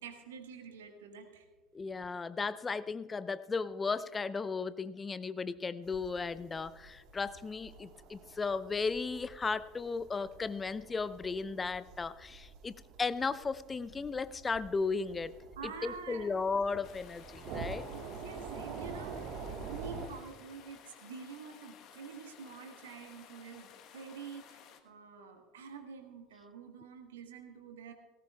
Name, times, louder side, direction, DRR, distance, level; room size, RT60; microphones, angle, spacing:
voice 1, 0.0-1.4 7.8-7.9 15.5-16.3 17.9-27.9, right 6 dB, 75° right, 6 dB, 1.5 m, -47 dB
voice 2, 1.7-15.3 15.6-17.9, left 4 dB, 20° left, 16 dB, 0.4 m, -35 dB
sound 1, 5.8-20.1, right 5 dB, 50° right, 1.4 m, -47 dB
sound 2, 16.8-24.8, left 8 dB, 50° left, 1.2 m, -56 dB
18.0 x 16.5 x 2.3 m, 1.3 s
figure-of-eight pair, 70°, 0 cm